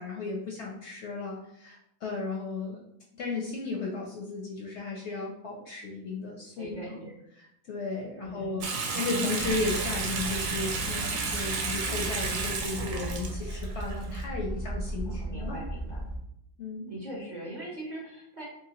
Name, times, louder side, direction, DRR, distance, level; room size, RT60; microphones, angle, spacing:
voice 1, 0.0-2.8 3.2-7.0 7.4-15.6 16.6-16.9, left 3 dB, 65° left, -1 dB, 0.7 m, -35 dB
voice 2, 6.6-7.1 8.2-9.0 15.1-16.1 16.9-18.4, right 1 dB, 40° right, -5 dB, 0.7 m, -41 dB
Water tap faucet / Sink (filling or washing) / Bathtub (filling or washing), 8.6-14.3, right 4 dB, 70° right, 0.9 m, -32 dB
sound 1, 9.4-16.2, right 1 dB, 5° left, 0.4 m, -37 dB
2.9 x 2.8 x 2.8 m, 0.77 s
omnidirectional pair, 1.5 m